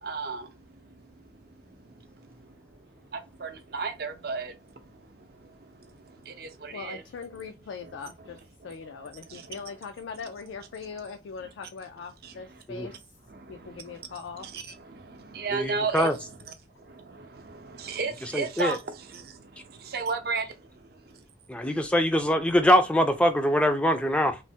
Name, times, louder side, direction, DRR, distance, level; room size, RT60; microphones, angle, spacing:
voice 1, 0.0-7.0 7.3-7.5 7.8-9.8 11.4-11.5 12.2-13.0 13.3-16.4 16.8-21.2, right 4 dB, 55° right, 0.5 m, -36 dB
voice 2, 6.7-8.4 8.6-12.9 13.5-14.5, left 5 dB, 90° left, 0.3 m, -40 dB
voice 3, 15.5-16.1 18.3-18.8 21.5-24.4, equal, 5° left, 0.3 m, -23 dB
3.1 x 2.0 x 2.7 m
head